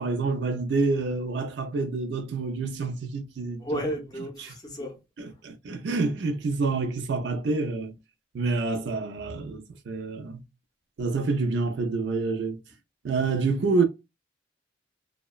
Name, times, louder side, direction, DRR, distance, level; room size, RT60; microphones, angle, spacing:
voice 1, 0.0-3.7 4.4-4.5 5.2-7.9 8.3-10.4 11.0-12.6 13.0-13.8, right 3 dB, 60° right, 0.4 m, -27 dB
voice 2, 3.6-5.0 5.3-5.4, equal, 20° left, 0.6 m, -33 dB
2.7 x 2.0 x 2.3 m
head